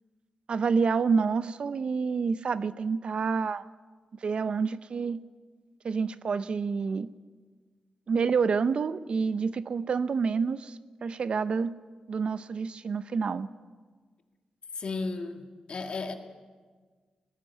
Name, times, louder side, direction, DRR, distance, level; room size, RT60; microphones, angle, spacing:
voice 1, 0.5-3.6 4.2-5.2 5.8-7.1 8.1-11.7 12.1-13.5, right 5 dB, 55° right, 15 dB, 0.7 m, -28 dB
voice 2, 14.7-16.1, left 3 dB, 55° left, 6 dB, 2.0 m, -34 dB
19.5 x 16.5 x 9.4 m, 1.5 s
wide cardioid pair, 120°, 2 cm